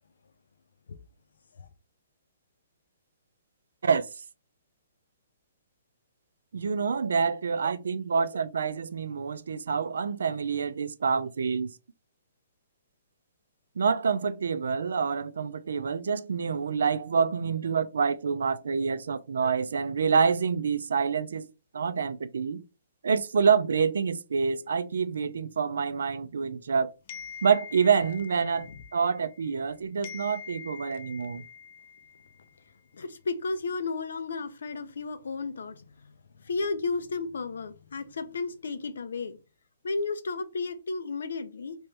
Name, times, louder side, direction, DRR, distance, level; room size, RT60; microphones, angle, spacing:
voice 1, 6.5-11.7 13.8-21.5 21.7-22.6 23.0-26.9 27.4-31.4, right 6 dB, 85° right, 0.4 m, -27 dB
sound 1, 27.1-29.7 30.0-32.6, left 6 dB, 35° left, 0.4 m, -45 dB
voice 2, 32.9-36.2 36.4-39.4 39.8-41.8, left 4 dB, 90° left, 0.6 m, -33 dB
3.1 x 2.9 x 3.4 m
hypercardioid pair, 170°, 0 cm